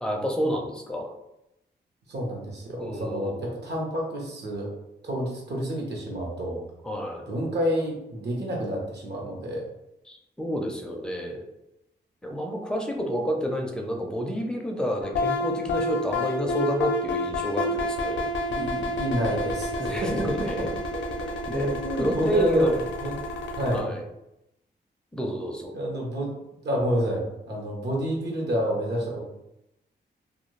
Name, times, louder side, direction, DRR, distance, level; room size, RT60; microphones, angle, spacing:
voice 1, 0.0-1.1 2.8-3.6 6.8-7.3 10.1-11.4 12.2-18.3 19.8-20.7 21.5-22.8 23.7-24.0 25.1-25.7, equal, 5° left, 1 dB, 0.4 m, -29 dB
voice 2, 2.1-4.7 5.0-6.6 7.3-9.6 18.5-20.5 21.5-22.7 23.0-23.2 23.6-23.9 25.7-26.3 26.6-29.2, equal, 70° right, -1 dB, 0.9 m, -29 dB
sound 1, 15.0-23.8, left 1 dB, 85° left, 0.5 m, -29 dB
2.4 x 2.3 x 3.1 m, 0.87 s
wide cardioid pair, 105°, 18 cm